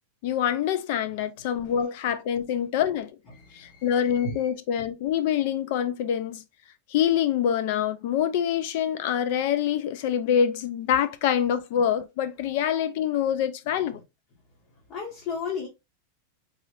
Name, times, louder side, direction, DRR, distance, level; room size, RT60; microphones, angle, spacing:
voice 1, 0.2-3.1 3.6-6.4 6.9-14.0, left 9 dB, 55° left, 0.4 m, -25 dB
voice 2, 3.3-4.5 14.9-15.7, left 5 dB, 40° left, 1.3 m, -34 dB
3.9 x 2.5 x 3.2 m
supercardioid pair, 155°, 0 cm